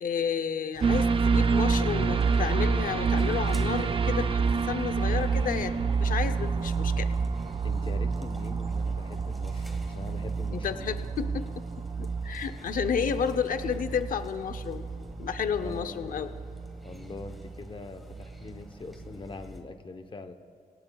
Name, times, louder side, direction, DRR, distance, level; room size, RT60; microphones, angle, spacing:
voice 1, 0.0-7.1 10.5-11.6 12.0-14.9 15.2-16.3, left 7 dB, 65° left, 10 dB, 0.7 m, -31 dB
sound 1, 0.7-19.6, left 1 dB, ahead, 1.5 m, -50 dB
sound 2, 0.8-18.6 19.0-19.1, right 5 dB, 35° right, 0.5 m, -28 dB
voice 2, 7.6-10.9 15.6-16.1 16.8-20.3, left 3 dB, 35° left, 8 dB, 0.9 m, -43 dB
25.0 x 17.0 x 2.3 m, 2.2 s
wide cardioid pair, 130°, 15 cm